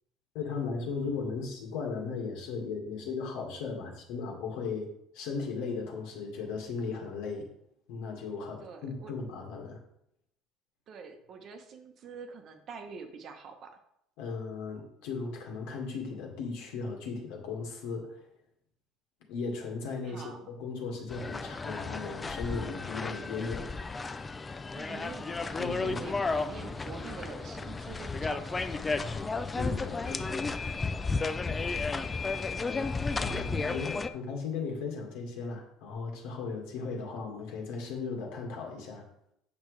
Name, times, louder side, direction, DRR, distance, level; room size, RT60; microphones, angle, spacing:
voice 1, 0.3-4.9 5.1-7.5 7.9-9.8 14.2-18.2 19.3-23.7 25.6-26.0 29.0-30.6 31.5-31.6 32.5-39.1, left 4 dB, 80° left, 1 dB, 1.9 m, -37 dB
voice 2, 8.6-9.1 10.9-13.7 20.0-20.4 24.7-28.8 32.1-32.4, right 5 dB, 40° right, 6 dB, 1.0 m, -46 dB
sound 1, 21.1-34.1, left 4 dB, 15° left, 0.3 m, -33 dB
8.4 x 6.0 x 3.3 m, 0.76 s
cardioid pair, 160°, 0 cm